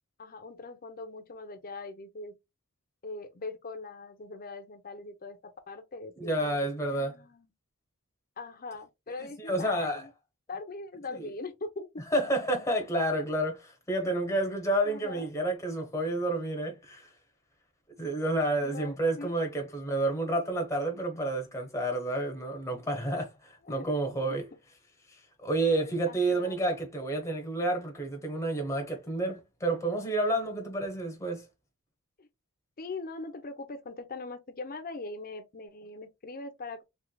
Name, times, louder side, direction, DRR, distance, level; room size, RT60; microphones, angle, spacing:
voice 1, 0.2-2.4 3.0-7.5 8.4-10.1 10.5-12.0 14.8-15.3 18.6-19.4 23.7-23.9 24.2-24.4 26.1-26.6 32.2-32.3 32.8-36.8, left 3 dB, 40° left, 0.7 m, -41 dB
voice 2, 6.2-7.1 9.5-10.1 11.1-11.3 12.1-17.1 18.0-24.4 25.4-31.4, right 1 dB, 15° left, 1.0 m, -30 dB
3.2 x 3.2 x 2.2 m
head